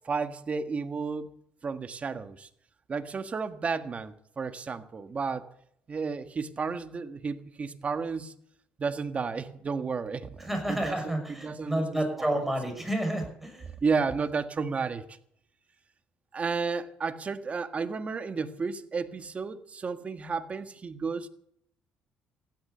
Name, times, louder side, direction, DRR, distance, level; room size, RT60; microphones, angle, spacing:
voice 1, 0.0-1.3 1.6-2.5 2.9-5.5 5.9-8.3 8.8-11.9 12.2-12.4 13.8-15.2 16.3-21.3, right 5 dB, 35° right, 9 dB, 1.6 m, -32 dB
voice 2, 10.4-13.7, right 1 dB, 5° right, 4 dB, 6.0 m, -30 dB
15.5 x 12.0 x 6.8 m, 0.69 s
cardioid pair, 90°, 4 cm